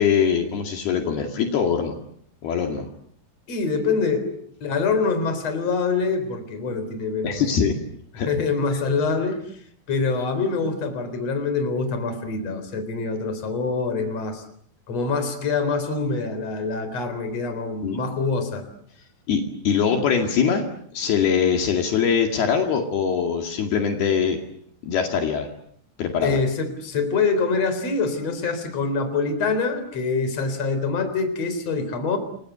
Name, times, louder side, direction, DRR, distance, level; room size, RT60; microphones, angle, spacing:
voice 1, 0.0-1.9 2.4-2.9 4.2-4.3 7.2-7.8 8.2-8.3 17.8-18.0 19.3-20.6 20.9-24.4 24.8-25.5 26.0-26.4, left 7 dB, 70° left, 3 dB, 4.2 m, -22 dB
voice 2, 3.5-4.3 4.6-7.4 8.3-9.4 9.9-14.4 14.9-18.6 26.2-32.2, left 4 dB, 40° left, 9 dB, 4.7 m, -25 dB
29.5 x 23.5 x 8.0 m, 0.66 s
omnidirectional pair, 4.7 m